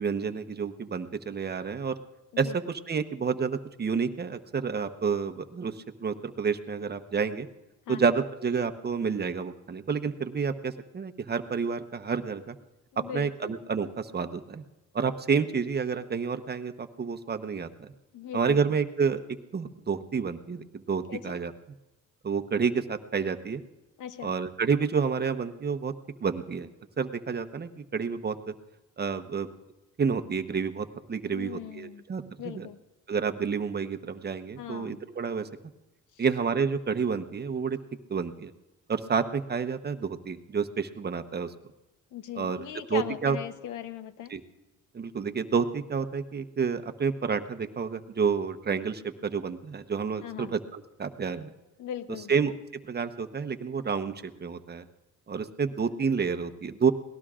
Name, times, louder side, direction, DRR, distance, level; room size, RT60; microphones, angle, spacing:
voice 1, 0.0-2.0 2.4-7.5 7.9-12.5 13.1-14.6 14.9-17.9 18.3-21.5 22.2-23.6 24.2-25.9 26.2-26.7 27.0-28.5 29.0-29.5 30.0-32.7 33.1-35.5 36.2-37.8 38.1-38.5 38.9-41.5 42.4-42.6 42.9-43.4 44.3-44.4 44.9-51.5 52.3-52.5 52.9-54.8 55.3-56.9, right 5 dB, 35° right, 7 dB, 1.0 m, -29 dB
voice 2, 12.9-13.5 18.1-18.7 21.1-21.4 24.0-24.3 31.3-32.0 32.4-32.8 34.6-35.0 36.1-36.2 42.1-44.4 50.2-50.5 51.8-52.3, left 10 dB, 85° left, 11 dB, 1.0 m, -39 dB
29.0 x 19.0 x 2.5 m, 1.1 s
cardioid pair, 90°, 30 cm